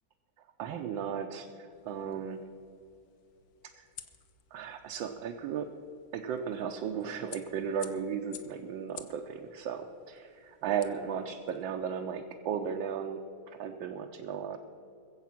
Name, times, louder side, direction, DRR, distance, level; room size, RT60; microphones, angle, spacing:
voice 1, 0.6-2.4 3.8-3.9 4.5-5.7 6.1-13.2 13.5-14.6, right 7 dB, 70° right, 3 dB, 1.4 m, -35 dB
sound 1, 1.7-11.6, left 8 dB, 60° left, 1.1 m, -54 dB
21.5 x 7.8 x 5.9 m, 2.5 s
omnidirectional pair, 2.3 m